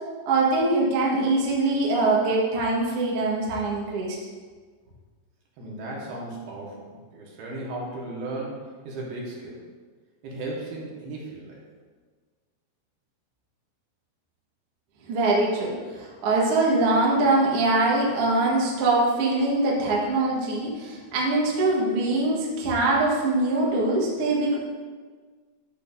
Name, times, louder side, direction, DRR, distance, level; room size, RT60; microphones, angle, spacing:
voice 1, 0.2-4.2 15.1-24.6, right 2 dB, 55° right, -4 dB, 1.8 m, -23 dB
voice 2, 5.6-9.6 10.2-11.6, right 2 dB, 80° right, -4 dB, 3.4 m, -36 dB
11.5 x 6.9 x 2.6 m, 1.5 s
omnidirectional pair, 4.4 m